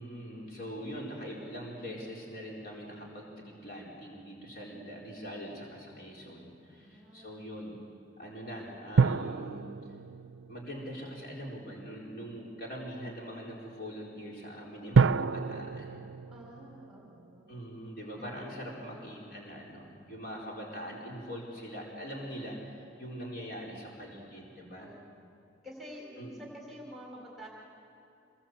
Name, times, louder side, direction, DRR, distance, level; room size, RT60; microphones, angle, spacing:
voice 1, 0.0-7.7 8.2-9.7 10.5-15.9 17.5-24.9 26.2-26.4, equal, 50° left, -3 dB, 4.5 m, -42 dB
voice 2, 6.7-7.4 14.7-14.9 16.3-17.5 18.0-18.6 18.8-19.1 22.1-22.5 24.8-25.0 25.6-27.5, equal, ahead, -2 dB, 4.0 m, -49 dB
sound 1, 9.0-11.6 14.9-17.6 17.8-17.9, right 5 dB, 85° right, 0.5 m, -29 dB
26.5 x 20.5 x 8.1 m, 2.8 s
head